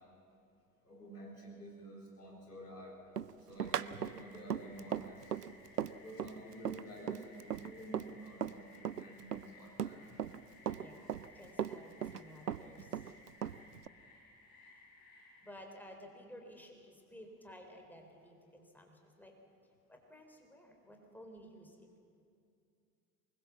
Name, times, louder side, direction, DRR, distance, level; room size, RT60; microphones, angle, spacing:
voice 1, 0.8-3.0 3.5-5.3 6.0-10.2, right 1 dB, 85° left, -1 dB, 4.1 m, -50 dB
Run, 3.2-8.6 8.8-10.4 10.7-12.2 12.5-13.9, right 9 dB, 90° right, 0.6 m, -38 dB
sound 1, 3.6-15.5, left 3 dB, 45° left, 7.3 m, -60 dB
voice 2, 10.6-13.0 15.4-19.4 19.9-21.8, equal, 5° left, 3 dB, 4.2 m, -54 dB
23.5 x 20.5 x 7.4 m, 2.4 s
figure-of-eight pair, 65°, 46 cm